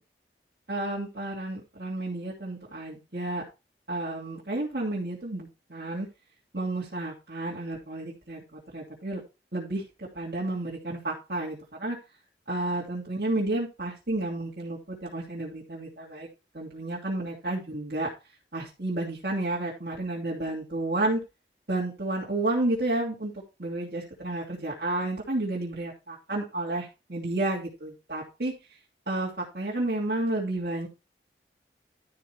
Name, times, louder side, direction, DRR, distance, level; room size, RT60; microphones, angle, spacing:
voice 1, 0.7-3.4 3.9-6.1 6.5-9.2 9.5-12.0 12.5-16.3 16.5-18.1 18.5-21.2 21.7-28.8 29.1-30.9, right 2 dB, 65° right, -6 dB, 2.8 m, -31 dB
12.5 x 5.0 x 4.5 m, 0.27 s
head